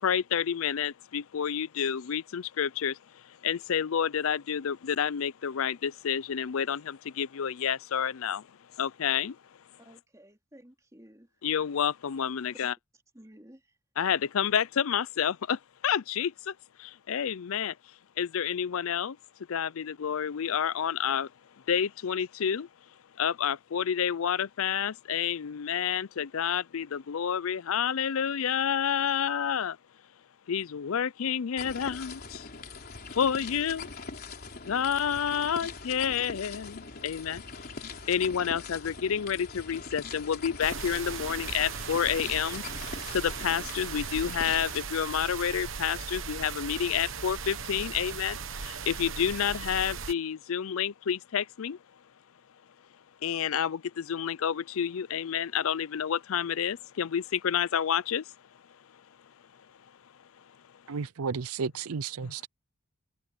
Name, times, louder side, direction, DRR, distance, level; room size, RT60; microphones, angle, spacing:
voice 1, 0.0-8.5 8.8-9.4 11.4-12.7 14.0-16.5 16.8-17.8 18.2-19.2 19.5-21.3 21.7-22.7 23.2-29.8 30.5-32.5 33.1-33.9 34.6-37.8 38.1-51.8 53.2-58.2 62.2-62.3, left 8 dB, 70° left, 0.5 m, -29 dB
voice 2, 9.8-11.3 12.6-12.7 13.1-13.7, right 1 dB, 15° right, 2.8 m, -54 dB
sound 1, 31.6-44.8, left 4 dB, 45° left, 4.1 m, -42 dB
sound 2, 40.6-50.1, right 6 dB, 60° right, 1.1 m, -38 dB
voice 3, 60.9-62.5, right 5 dB, 80° right, 0.6 m, -33 dB
head